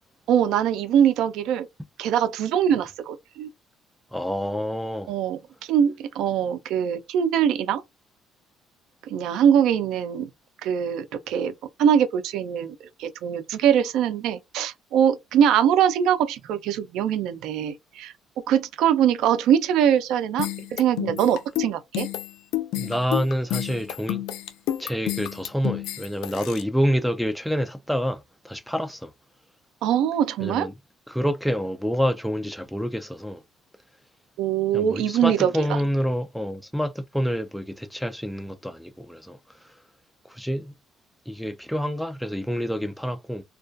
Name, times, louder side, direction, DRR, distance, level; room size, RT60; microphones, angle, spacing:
voice 1, 0.3-1.7 2.0-3.5 5.1-5.4 5.7-7.8 9.0-10.3 10.6-11.5 11.8-12.7 13.0-18.1 18.5-22.1 29.8-30.7 34.4-35.8, right 9 dB, 80° right, 0.3 m, -22 dB
voice 2, 4.1-5.1 22.7-24.2 24.8-29.1 30.4-30.7 31.1-33.4 34.7-39.4 40.3-40.7 41.3-43.4, equal, ahead, 0.4 m, -27 dB
sound 1, 20.4-26.6, left 14 dB, 85° left, 0.3 m, -30 dB
2.3 x 2.2 x 2.5 m
cardioid pair, 100°, 0 cm